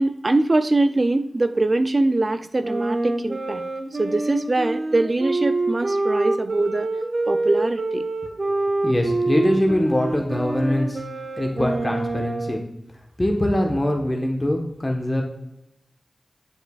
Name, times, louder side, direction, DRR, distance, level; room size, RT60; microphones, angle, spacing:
voice 1, 0.0-3.6 4.0-6.9 7.3-8.0, right 2 dB, 45° right, 10 dB, 0.5 m, -22 dB
Wind instrument woodwind instrument, 2.6-12.7, right 2 dB, 60° right, 1.0 m, -26 dB
voice 2, 8.8-11.0 11.4-12.6 13.2-15.2, left 1 dB, 25° left, 1 dB, 1.2 m, -23 dB
9.7 x 6.6 x 2.4 m, 0.85 s
cardioid pair, 50°, 0 cm